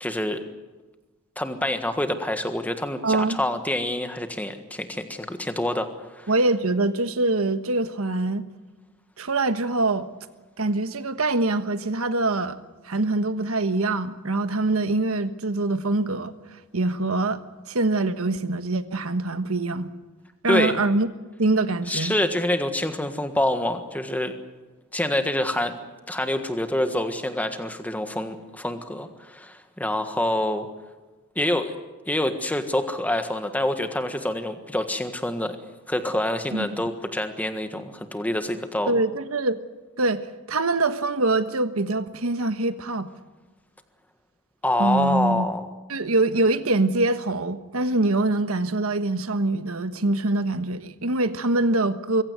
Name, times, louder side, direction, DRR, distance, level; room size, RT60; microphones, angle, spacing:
voice 1, 0.0-0.4 1.4-6.3 20.5-20.7 21.9-24.3 24.9-25.8 26.1-30.7 31.3-31.8 32.1-35.6 35.9-39.0 44.6-45.7, left 1 dB, 5° left, 7 dB, 1.5 m, -26 dB
voice 2, 3.0-3.4 6.3-8.4 9.2-10.1 10.6-12.6 12.8-16.3 16.7-17.4 17.7-19.9 20.4-21.1 21.4-22.1 36.5-36.7 38.9-39.6 40.0-43.1 44.8-45.4 45.9-52.2, right 2 dB, 80° right, 10 dB, 1.3 m, -24 dB
24.0 x 16.0 x 9.3 m, 1.2 s
head